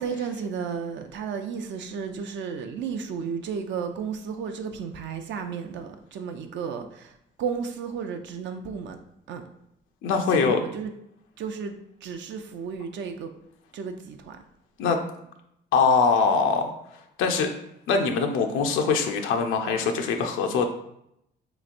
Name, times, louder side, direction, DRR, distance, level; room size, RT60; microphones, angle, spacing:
voice 1, 0.0-9.0 9.3-9.4 10.3-10.9 11.4-13.3 13.7-14.4, right 6 dB, 65° right, 6 dB, 0.4 m, -33 dB
voice 2, 10.0-10.6 14.8-15.0 15.7-16.7 17.2-17.5 17.9-20.7, left 5 dB, 90° left, 4 dB, 0.4 m, -22 dB
3.4 x 3.0 x 2.5 m, 0.77 s
cardioid pair, 90°, 20 cm